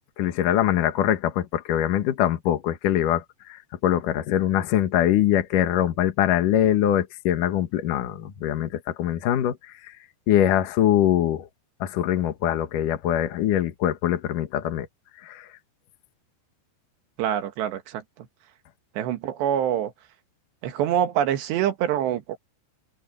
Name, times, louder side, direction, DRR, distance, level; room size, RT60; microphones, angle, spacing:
voice 1, 0.2-9.9 10.3-11.5 11.8-14.9 15.2-15.5, left 11 dB, 60° left, 2.4 m, -23 dB
voice 2, 17.2-18.0 19.0-19.9 20.6-22.4, right 10 dB, 75° right, 3.5 m, -25 dB
omnidirectional pair, 5.2 m